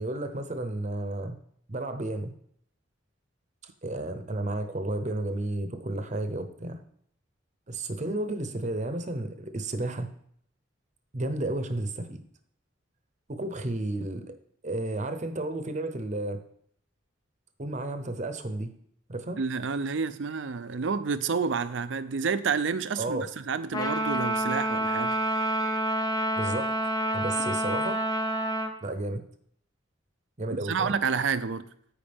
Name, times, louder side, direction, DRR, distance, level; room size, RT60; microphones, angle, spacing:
voice 1, 0.0-1.4 1.7-2.3 3.8-6.8 7.7-10.1 11.1-12.2 13.3-14.4 14.6-16.4 17.6-18.7 19.1-19.4 23.0-23.3 26.4-26.7 27.1-28.0 28.8-29.2 30.4-30.9, right 2 dB, 35° right, 0.8 m, -32 dB
voice 2, 19.4-25.2 30.5-31.6, right 5 dB, 65° right, 0.5 m, -29 dB
Trumpet, 23.7-28.7, right 1 dB, 20° left, 0.6 m, -28 dB
14.0 x 5.0 x 3.5 m
head